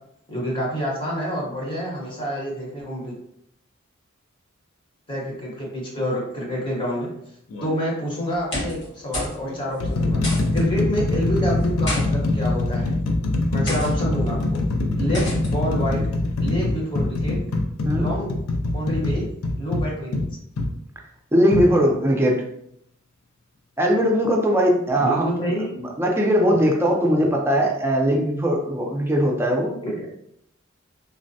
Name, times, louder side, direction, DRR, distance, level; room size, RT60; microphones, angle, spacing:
voice 1, 0.3-3.2 5.1-7.1 7.6-10.2 10.5-12.9 13.5-14.6 15.0-16.1 16.4-17.4 18.0-18.3 18.7-19.3 19.6-20.1 25.0-25.7 29.8-30.1, equal, 25° left, -3 dB, 0.9 m, -27 dB
sound 1, 7.5-7.8 8.6-8.8 9.4-20.7 21.5-21.7, left 2 dB, 80° left, 0.4 m, -23 dB
sound 2, 8.3-8.9 9.1-9.4 9.7-9.8 10.2-10.6 11.6-12.0 12.8-13.0 13.7-13.9 15.1-15.5, left 1 dB, 65° left, 1.3 m, -30 dB
voice 2, 21.3-22.4 23.8-29.8, equal, 10° right, -1 dB, 0.5 m, -20 dB
3.3 x 2.1 x 2.6 m, 0.73 s
head